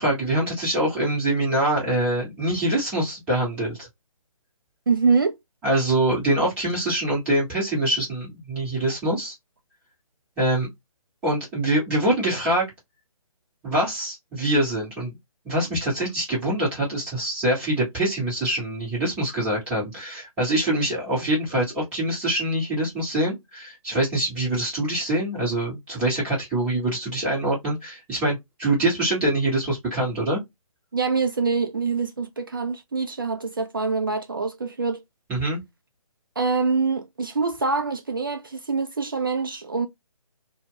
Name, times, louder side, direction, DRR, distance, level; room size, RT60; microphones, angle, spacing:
voice 1, 0.0-3.9 5.6-9.3 10.4-10.7 11.2-12.6 13.6-15.2 15.4-30.4 35.3-35.6, right 1 dB, 10° right, 0.9 m, -24 dB
voice 2, 4.9-5.4 30.9-35.0 36.4-39.9, right 4 dB, 40° right, 0.4 m, -25 dB
2.2 x 2.1 x 3.5 m
figure-of-eight pair, 145°, 18 cm